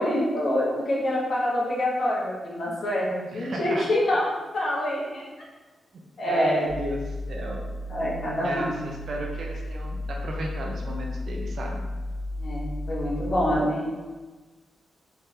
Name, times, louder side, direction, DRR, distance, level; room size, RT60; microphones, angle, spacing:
voice 1, 0.0-4.3 4.5-5.2 6.2-6.6 7.9-8.7 12.4-14.0, left 1 dB, 60° left, -5 dB, 1.1 m, -26 dB
voice 2, 3.3-3.9 6.2-7.6 8.4-11.8 13.5-13.7, right 1 dB, 70° right, 0 dB, 0.6 m, -33 dB
sound 1, 6.6-13.6, left 1 dB, 40° right, 1.1 m, -34 dB
3.5 x 3.3 x 2.7 m, 1.3 s
cardioid pair, 70°, 0 cm